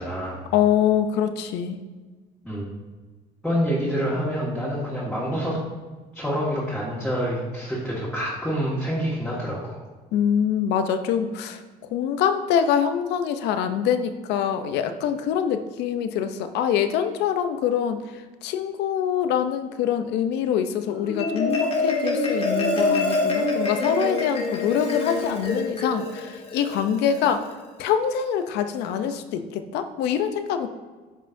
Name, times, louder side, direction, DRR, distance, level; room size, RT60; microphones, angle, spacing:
voice 1, 0.0-0.4 2.4-2.7 3.4-5.6 6.1-9.8, equal, ahead, -8 dB, 1.8 m, -27 dB
voice 2, 0.5-1.8 10.1-11.6 11.9-27.4 27.8-30.7, left 8 dB, 85° left, 8 dB, 0.6 m, -24 dB
Marimba xylophone, 20.9-27.5, left 2 dB, 35° left, 1.5 m, -26 dB
10.5 x 5.6 x 2.7 m, 1.3 s
cardioid pair, 110°, 17 cm